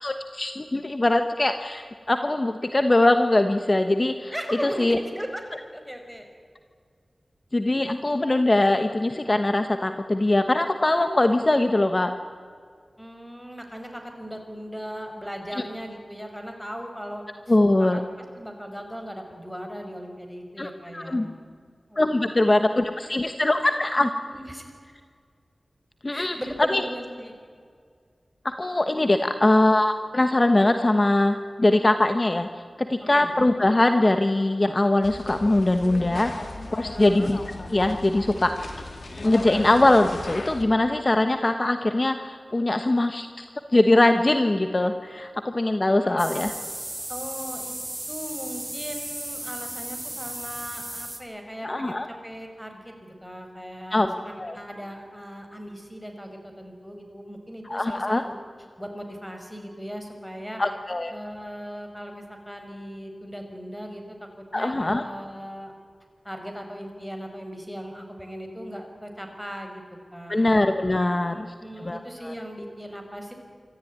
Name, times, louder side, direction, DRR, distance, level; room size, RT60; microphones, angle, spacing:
voice 1, 0.0-4.3 4.6-5.0 7.5-12.1 17.5-18.0 20.6-21.3 22.0-24.1 26.0-26.4 26.7-26.8 28.4-32.5 32.8-36.3 36.7-37.4 37.7-38.7 39.2-43.4 43.7-46.5 51.6-52.1 53.9-54.1 54.4-54.6 57.7-58.2 60.6-61.1 64.5-65.0 70.3-71.4 71.8-72.3, left 2 dB, 40° left, 8 dB, 1.3 m, -22 dB
voice 2, 4.3-5.4 5.7-6.3 13.0-18.0 18.4-21.3 21.9-22.8 24.3-24.6 26.1-27.3 33.1-33.3 36.9-37.3 46.0-46.4 47.1-47.7 48.1-58.4 58.8-60.6 61.1-65.7 66.2-69.8 70.1-70.6 71.3-73.3, equal, ahead, 4 dB, 5.5 m, -38 dB
sound 1, 35.0-40.6, left 2 dB, 65° left, 2.9 m, -37 dB
sound 2, 46.2-51.2, right 1 dB, 25° right, 3.3 m, -35 dB
26.0 x 14.0 x 9.7 m, 2.1 s
cardioid pair, 45°, 0 cm